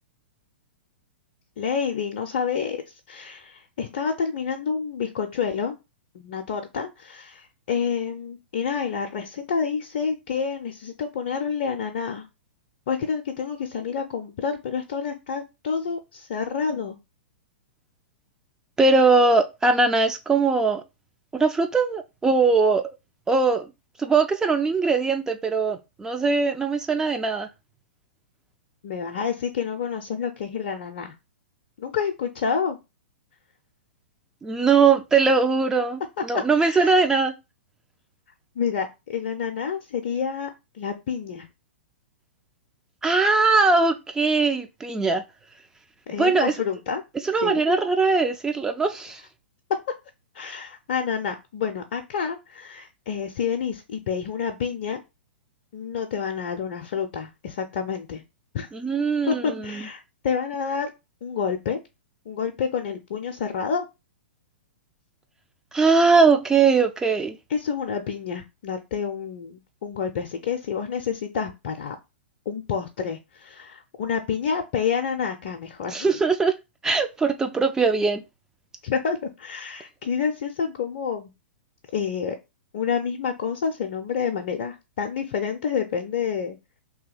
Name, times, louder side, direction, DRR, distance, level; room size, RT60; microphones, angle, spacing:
voice 1, 1.6-2.8 3.1-5.7 6.1-12.2 12.9-17.0 28.8-31.1 31.8-32.8 36.6-36.9 38.6-41.5 46.1-47.0 47.4-47.6 50.3-55.0 55.7-58.2 58.5-58.7 59.3-60.9 61.2-61.8 62.3-63.9 67.5-72.0 72.5-76.1 78.8-81.3 81.9-82.4 82.7-86.6, left 6 dB, 50° left, 0.5 m, -28 dB
voice 2, 18.8-20.8 21.3-22.8 23.3-23.6 24.0-27.5 34.4-37.3 43.0-45.2 46.2-46.5 47.3-49.2 58.7-59.8 65.7-67.4 75.9-76.5 76.8-78.2, right 4 dB, 10° right, 0.3 m, -21 dB
2.8 x 2.8 x 3.8 m
figure-of-eight pair, 110°, 6 cm